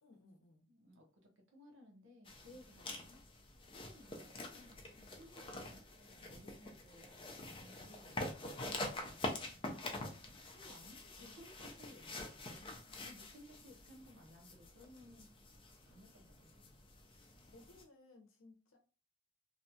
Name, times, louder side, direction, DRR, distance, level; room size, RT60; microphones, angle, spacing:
voice 1, 0.0-0.7 2.5-2.6 4.9-5.2 6.2-6.5 9.4-10.0 12.7-13.0 17.5-18.8, left 2 dB, 70° left, 0.7 m, -63 dB
voice 2, 0.7-3.2 3.7-4.8 5.1-15.3 15.9-16.7 17.1-17.2, equal, 65° right, 0.8 m, -60 dB
sound 1, 2.2-17.8, left 2 dB, 25° left, 0.4 m, -47 dB
2.6 x 2.2 x 2.7 m
head